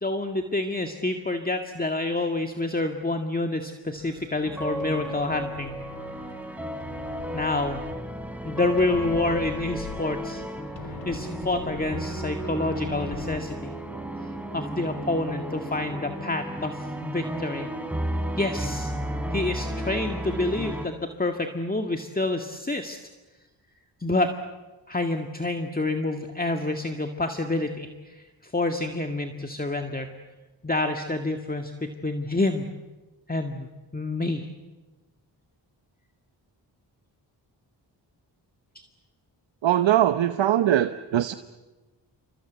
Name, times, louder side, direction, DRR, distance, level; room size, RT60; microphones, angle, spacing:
voice 1, 0.0-5.8 7.3-7.8 8.4-10.4 11.1-13.7 14.5-17.7 18.4-18.9 19.3-23.0 24.0-24.3 24.9-30.1 30.6-32.7 33.3-34.5, left 2 dB, 20° left, 5 dB, 1.9 m, -28 dB
sound 1, 4.0-13.4, left 5 dB, 90° left, 2.1 m, -42 dB
sound 2, 4.4-20.9, right 1 dB, 5° right, 4.2 m, -33 dB
voice 2, 39.6-41.3, right 12 dB, 85° right, 11 dB, 0.9 m, -21 dB
28.5 x 24.5 x 8.2 m, 1.2 s
cardioid pair, 55°, 44 cm